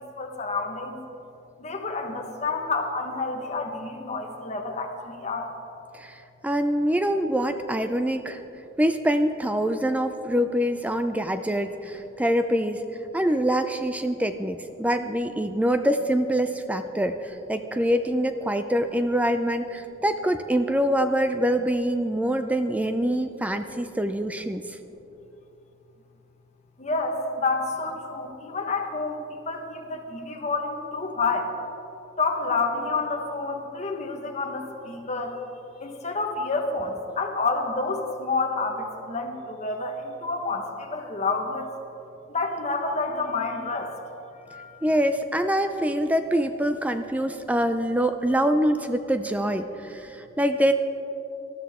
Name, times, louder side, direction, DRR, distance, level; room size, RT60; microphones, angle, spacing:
voice 1, 0.2-1.0 1.6-5.5 26.8-31.5 32.2-35.3 35.8-41.7 42.3-43.9 44.5-44.7, left 3 dB, 35° left, 3 dB, 1.3 m, -29 dB
voice 2, 5.9-8.4 8.8-12.8 13.1-24.8 44.8-50.7, equal, 5° right, 8 dB, 0.4 m, -25 dB
19.5 x 13.0 x 3.6 m, 3.0 s
head